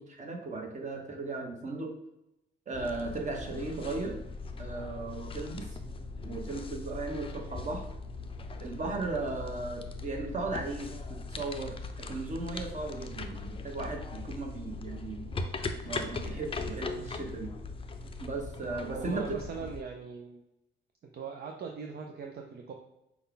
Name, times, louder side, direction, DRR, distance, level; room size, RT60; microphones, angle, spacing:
voice 1, 0.0-1.9 2.7-4.2 4.6-5.8 6.2-7.8 8.6-15.3 15.8-17.5 18.2-19.4, right 3 dB, 35° right, 2 dB, 1.2 m, -36 dB
sound 1, 2.7-19.8, left 3 dB, 25° left, 0.5 m, -40 dB
voice 2, 18.7-20.4 21.1-22.7, right 5 dB, 55° right, 2 dB, 0.6 m, -41 dB
5.3 x 2.3 x 3.8 m, 0.85 s
cardioid pair, 90°, 20 cm